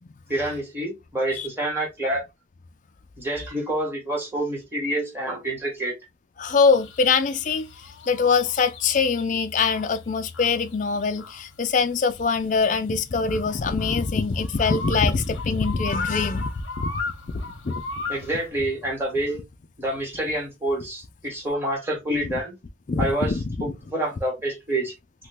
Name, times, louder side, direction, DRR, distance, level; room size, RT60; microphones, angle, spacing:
voice 1, 0.3-2.2 3.2-5.9 18.1-19.4 19.8-22.5 23.0-24.9, right 1 dB, 10° right, 1.2 m, -27 dB
voice 2, 6.4-7.7 8.1-16.9 17.3-17.8 22.9-23.7, left 5 dB, 40° left, 0.4 m, -23 dB
sound 1, 6.5-18.5, left 3 dB, 85° left, 0.7 m, -38 dB
3.1 x 2.2 x 3.3 m
head